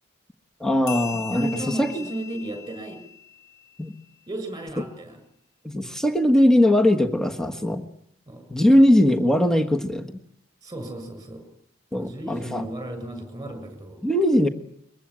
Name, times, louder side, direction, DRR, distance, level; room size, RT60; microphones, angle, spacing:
voice 1, 0.6-1.5 1.8-2.0 3.8-3.9 5.6-7.8 8.5-10.1 11.9-12.7 14.0-14.5, left 1 dB, 5° left, 5 dB, 1.5 m, -20 dB
sound 1, 0.9-3.9, left 8 dB, 80° left, 4.5 m, -39 dB
voice 2, 1.3-3.0 4.3-5.2 8.3-8.4 10.6-11.4 12.0-14.1, right 1 dB, 20° right, 8 dB, 7.1 m, -34 dB
22.5 x 22.5 x 8.9 m, 0.70 s
head